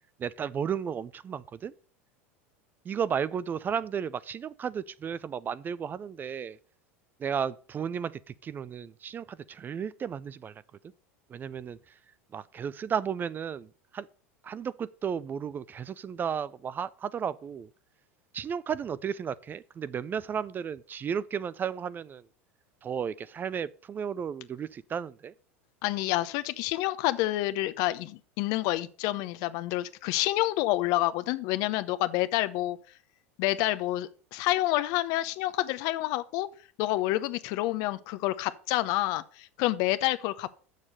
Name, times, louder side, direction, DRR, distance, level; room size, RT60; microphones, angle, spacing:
voice 1, 0.2-1.7 2.9-6.6 7.2-10.5 11.3-11.8 12.3-13.7 13.9-14.1 14.4-17.7 18.3-22.2 22.8-25.3, right 7 dB, 30° right, 0.4 m, -33 dB
voice 2, 25.8-32.8 33.4-36.5 36.8-40.6, left 16 dB, 60° left, 0.7 m, -28 dB
7.1 x 6.6 x 6.5 m
hypercardioid pair, 95°, 7 cm